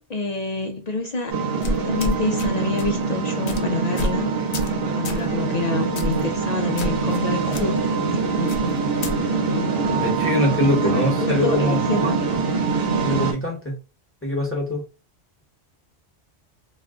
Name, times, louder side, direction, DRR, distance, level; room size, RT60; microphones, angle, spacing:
voice 1, 0.0-4.3 4.8-8.7 9.3-9.7 10.4-12.2, left 3 dB, 55° left, 0.5 m, -28 dB
sound 1, 1.3-13.3, right 4 dB, 65° right, 1.0 m, -24 dB
sound 2, 1.6-2.5 2.8-3.0 3.5-3.6 4.0-4.2 4.5-4.8 5.0-5.2 6.0-6.2 6.8-7.2 7.5-7.6 8.5-9.1, left 1 dB, 85° left, 0.9 m, -28 dB
voice 2, 10.0-12.1 13.0-13.7 14.2-14.8, left 1 dB, 15° left, 0.9 m, -23 dB
2.4 x 2.3 x 3.5 m
omnidirectional pair, 1.1 m